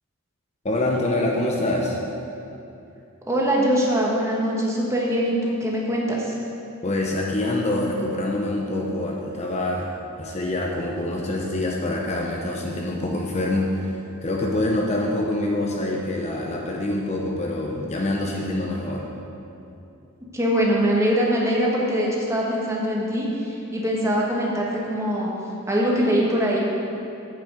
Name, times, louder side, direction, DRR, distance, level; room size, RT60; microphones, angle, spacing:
voice 1, 0.6-2.0 6.8-9.9 10.2-19.1, left 1 dB, 30° left, -1 dB, 0.7 m, -25 dB
voice 2, 3.3-6.3 20.3-25.3 25.7-26.6, equal, 15° right, -4 dB, 1.4 m, -22 dB
8.6 x 5.9 x 7.5 m, 2.8 s
head